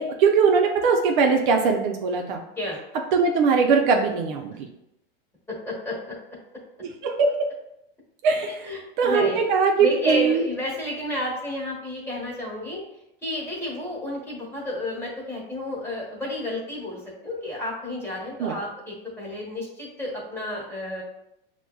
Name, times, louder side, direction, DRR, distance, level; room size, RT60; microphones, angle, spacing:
voice 1, 0.0-2.4 3.1-4.7 6.8-7.4 8.2-10.4 18.4-18.6, right 5 dB, 60° right, 2 dB, 0.6 m, -21 dB
voice 2, 5.6-6.1 8.6-9.5 9.8-12.8 13.2-21.0, left 1 dB, 10° left, -5 dB, 1.3 m, -31 dB
5.9 x 2.2 x 2.2 m, 0.82 s
supercardioid pair, 120°, 29 cm